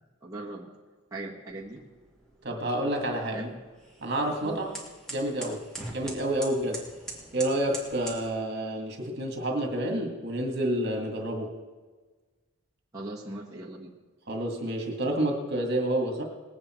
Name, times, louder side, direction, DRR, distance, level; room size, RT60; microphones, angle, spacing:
voice 1, 0.2-0.7 1.1-1.8 3.3-3.6 4.4-4.6 12.9-14.0, right 2 dB, 15° right, -6 dB, 1.4 m, -39 dB
sound 1, 1.5-8.3, right 2 dB, 5° left, 2.1 m, -44 dB
voice 2, 2.4-3.4 4.0-4.7 5.1-6.8 7.3-11.5 14.3-16.2, right 1 dB, 50° right, 1 dB, 2.1 m, -29 dB
20.0 x 8.7 x 4.5 m, 1.4 s
head